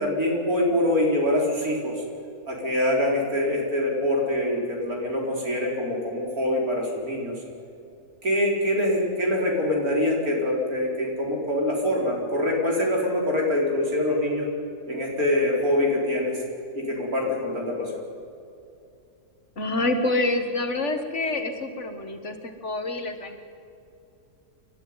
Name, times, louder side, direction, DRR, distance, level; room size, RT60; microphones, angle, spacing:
voice 1, 0.0-1.9 2.5-7.3 8.2-14.5 14.9-16.4 16.7-17.9, left 1 dB, 70° right, -1 dB, 4.8 m, -24 dB
voice 2, 19.6-23.4, left 2 dB, 50° left, 6 dB, 1.9 m, -27 dB
29.0 x 12.5 x 9.6 m, 2.6 s
omnidirectional pair, 1.6 m